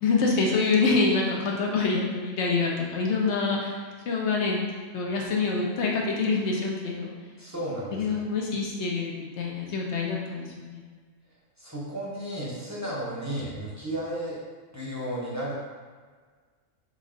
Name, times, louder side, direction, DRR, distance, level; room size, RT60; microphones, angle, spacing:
voice 1, 0.0-3.8 4.1-4.6 4.9-7.2 7.9-10.8, left 4 dB, 65° left, -2 dB, 1.0 m, -26 dB
voice 2, 7.4-8.2 11.6-14.4 14.7-15.5, right 1 dB, 15° right, -7 dB, 0.7 m, -33 dB
3.4 x 2.6 x 3.8 m, 1.5 s
omnidirectional pair, 1.3 m